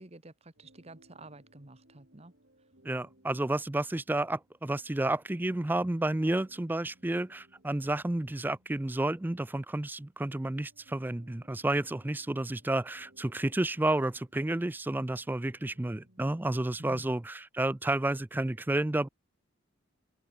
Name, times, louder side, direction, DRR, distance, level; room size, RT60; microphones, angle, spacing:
voice 1, 0.0-2.3 16.8-17.1, right 2 dB, 30° right, 1.4 m, -50 dB
sound 1, 0.6-16.6, right 1 dB, 60° right, 6.7 m, -64 dB
voice 2, 2.8-19.1, right 1 dB, 10° right, 0.4 m, -31 dB
open air
head